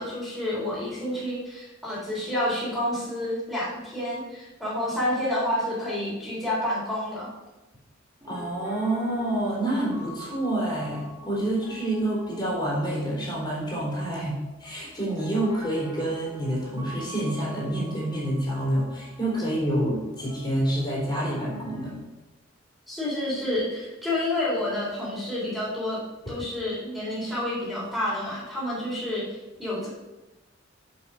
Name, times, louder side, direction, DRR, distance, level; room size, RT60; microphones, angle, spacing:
voice 1, 0.0-7.3 22.9-26.0 26.3-29.3 29.6-29.9, left 1 dB, ahead, -8 dB, 3.6 m, -29 dB
Piano, 8.2-21.9, equal, 20° right, 2.3 m, -46 dB
voice 2, 8.3-21.9, right 1 dB, 25° left, -6 dB, 3.7 m, -28 dB
7.5 x 7.2 x 6.2 m, 1.1 s
head